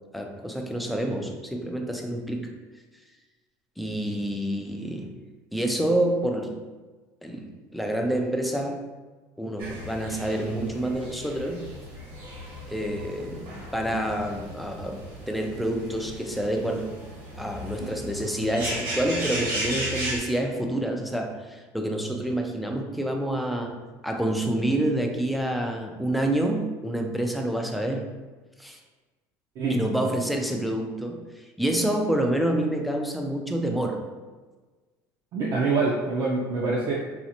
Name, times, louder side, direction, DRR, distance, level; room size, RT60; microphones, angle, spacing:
voice 1, 0.1-2.6 3.8-5.2 5.5-6.6 7.2-8.9 9.4-11.7 12.7-13.5 13.7-17.0 17.4-28.1 28.6-28.8 29.7-34.1, right 1 dB, ahead, 2 dB, 0.3 m, -28 dB
sound 1, 9.6-20.2, equal, 75° right, 1.2 m, -36 dB
voice 2, 35.3-36.9, right 3 dB, 55° right, -4 dB, 0.5 m, -25 dB
4.1 x 2.4 x 2.7 m, 1.3 s
cardioid pair, 145°, 8 cm